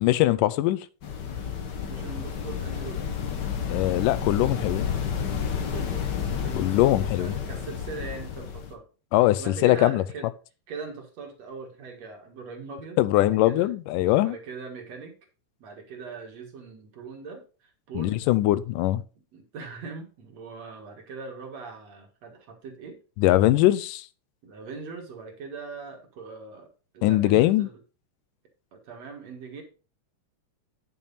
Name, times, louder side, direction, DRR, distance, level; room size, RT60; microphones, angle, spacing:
voice 1, 0.0-0.9 3.7-4.9 6.6-7.4 9.1-10.0 13.0-14.4 18.0-19.0 23.2-24.1 27.0-27.7, left 15 dB, 90° left, 2.2 m, -21 dB
sound 1, 1.0-8.7, left 7 dB, 70° left, 1.0 m, -31 dB
voice 2, 1.8-3.0 5.7-8.8 9.4-10.3 10.7-13.7 14.2-15.1 15.6-17.4 17.9-18.2 19.3-23.0 24.4-26.7 26.9-27.8 28.7-29.6, right 4 dB, 60° right, 2.7 m, -41 dB
9.4 x 7.1 x 4.1 m
omnidirectional pair, 3.7 m